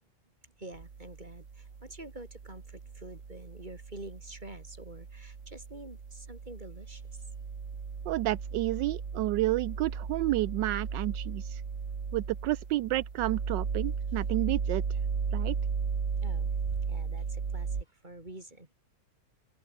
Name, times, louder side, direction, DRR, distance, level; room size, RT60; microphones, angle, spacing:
voice 1, 0.4-7.2 16.2-16.5 16.8-18.7, right 2 dB, 25° right, 4.8 m, -47 dB
sound 1, 0.7-17.8, right 5 dB, 45° right, 2.1 m, -35 dB
voice 2, 8.1-11.6 12.1-15.0 15.3-15.5, right 16 dB, 80° right, 1.2 m, -30 dB
open air
omnidirectional pair, 1.9 m